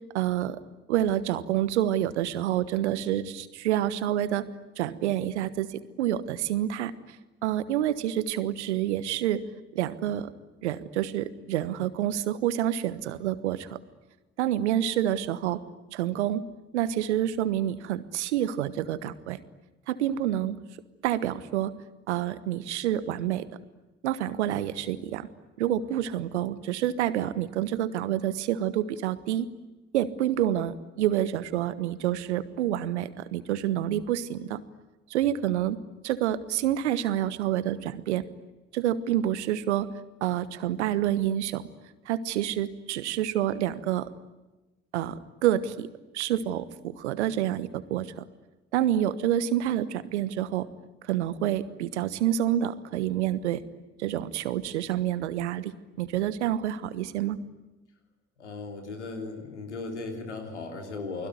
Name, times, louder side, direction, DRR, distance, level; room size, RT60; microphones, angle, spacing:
voice 1, 0.1-0.6 0.9-4.4 4.8-6.9 7.4-9.4 9.7-10.3 10.6-13.8 14.4-15.6 15.9-16.4 16.7-19.4 19.9-20.6 21.0-21.7 22.1-23.4 24.0-25.3 25.6-29.5 29.9-34.6 35.1-35.8 36.0-38.2 38.7-39.9 40.2-41.6 42.1-44.1 44.9-45.9 46.1-48.1 48.7-50.7 51.0-53.6 54.0-55.7 56.0-57.4, right 12 dB, 80° right, 16 dB, 1.3 m, -28 dB
voice 2, 58.4-61.3, left 3 dB, 90° left, 5 dB, 3.4 m, -37 dB
29.5 x 21.0 x 9.5 m, 1.1 s
figure-of-eight pair, 40°, 34 cm